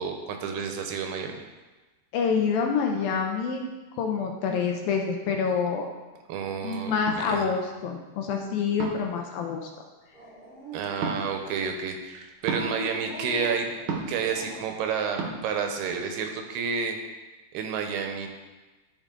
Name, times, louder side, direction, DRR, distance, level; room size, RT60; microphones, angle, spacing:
voice 1, 0.0-1.4 6.3-7.5 10.7-13.7 14.1-17.0 17.5-18.3, right 6 dB, 85° right, 4 dB, 2.8 m, -30 dB
voice 2, 2.1-3.7 4.0-5.9 6.6-9.6, left 6 dB, 75° left, 2 dB, 2.3 m, -27 dB
sound 1, 7.1-7.2 8.8-9.1 11.0-11.2 12.5-12.7 13.9-14.2 15.2-15.3, right 5 dB, 65° right, 2.0 m, -31 dB
Dog, 10.1-11.6 12.4-14.8, equal, 25° right, 1.7 m, -41 dB
12.5 x 4.9 x 3.8 m, 1.2 s
omnidirectional pair, 4.6 m